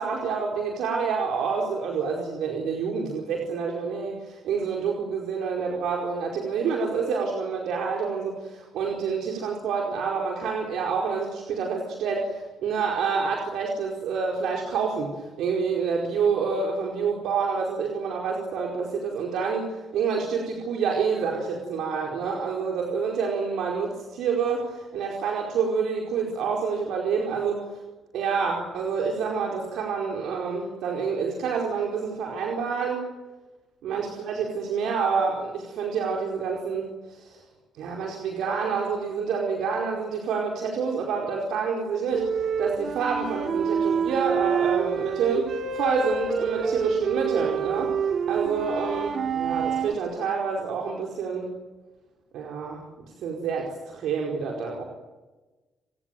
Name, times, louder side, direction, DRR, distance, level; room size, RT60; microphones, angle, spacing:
voice 1, 0.0-27.7 28.1-33.0 33.8-37.4 37.8-51.5 52.3-52.8 53.2-54.8, right 5 dB, 80° right, 0 dB, 4.7 m, -28 dB
sound 1, 42.1-49.9, right 6 dB, 55° right, 2.3 m, -27 dB
29.5 x 20.0 x 9.3 m, 1.2 s
cardioid pair, 90°, 0 cm